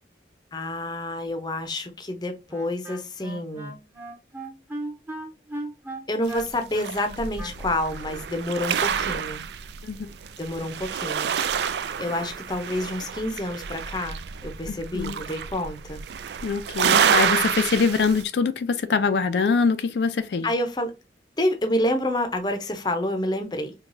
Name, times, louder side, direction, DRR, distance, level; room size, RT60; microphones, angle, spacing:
voice 1, 0.5-3.7 6.1-9.4 10.4-11.3 12.0-16.0 20.4-20.9 21.4-23.7, left 1 dB, 25° left, 0.6 m, -28 dB
Wind instrument woodwind instrument, 2.5-8.1, right 1 dB, 10° right, 0.7 m, -37 dB
sound 1, 6.3-18.2, right 7 dB, 75° right, 0.3 m, -28 dB
voice 2, 14.7-15.2 16.4-20.5, left 5 dB, 75° left, 0.4 m, -24 dB
4.6 x 2.3 x 2.5 m
head